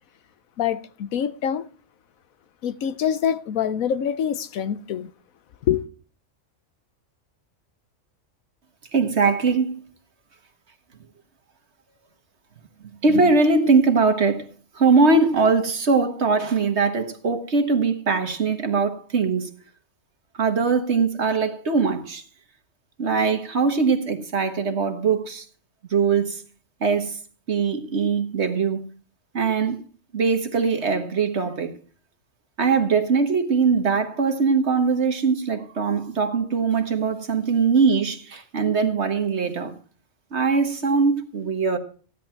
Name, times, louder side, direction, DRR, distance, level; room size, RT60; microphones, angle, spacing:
voice 1, 0.6-1.7 2.6-5.1 5.6-5.8, left 9 dB, 80° left, 1.2 m, -25 dB
voice 2, 8.9-9.8 13.0-14.5 14.7-19.5 20.4-22.2 23.0-25.4 25.9-26.4 26.8-27.2 27.5-28.8 29.3-29.8 30.1-31.7 32.6-39.7 40.3-41.8, right 4 dB, 55° right, 1.7 m, -21 dB
15.5 x 10.5 x 4.5 m
omnidirectional pair, 1.4 m